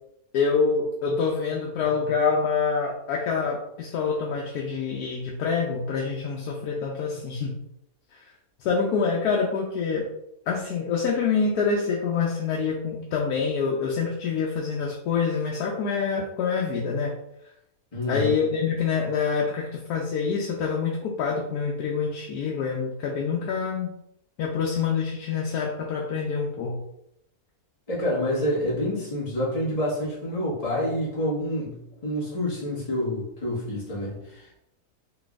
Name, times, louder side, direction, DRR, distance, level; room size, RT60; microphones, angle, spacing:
voice 1, 0.3-7.5 8.6-10.1 10.5-17.1 18.1-23.9 24.4-26.8, left 5 dB, 90° left, -1 dB, 1.1 m, -26 dB
voice 2, 1.8-2.1 17.9-18.3 27.9-34.6, left 1 dB, 25° left, -7 dB, 1.5 m, -28 dB
3.9 x 3.3 x 2.4 m, 0.79 s
omnidirectional pair, 1.6 m